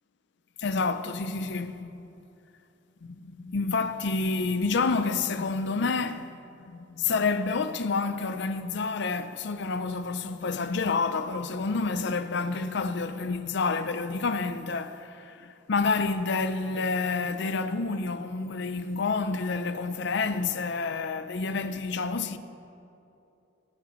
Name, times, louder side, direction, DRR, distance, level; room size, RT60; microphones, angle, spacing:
voice 1, 0.6-2.1 3.0-22.4, left 4 dB, 65° left, 0.6 m, -29 dB
21.0 x 9.9 x 3.2 m
head